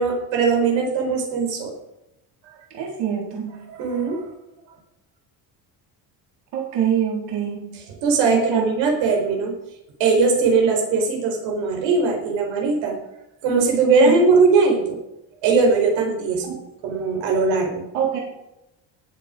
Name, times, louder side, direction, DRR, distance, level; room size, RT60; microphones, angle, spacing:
voice 1, 0.0-1.7 3.7-4.3 8.0-9.5 10.0-12.9 13.4-15.0 15.4-16.6 16.8-17.8, right 4 dB, 90° right, 2 dB, 4.7 m, -20 dB
voice 2, 2.7-3.6 6.5-7.8 8.3-8.7 14.0-14.2 16.4-16.5 17.9-18.2, right 9 dB, 60° right, -1 dB, 3.9 m, -25 dB
19.5 x 8.0 x 5.1 m, 0.89 s
cardioid pair, 135°, 44 cm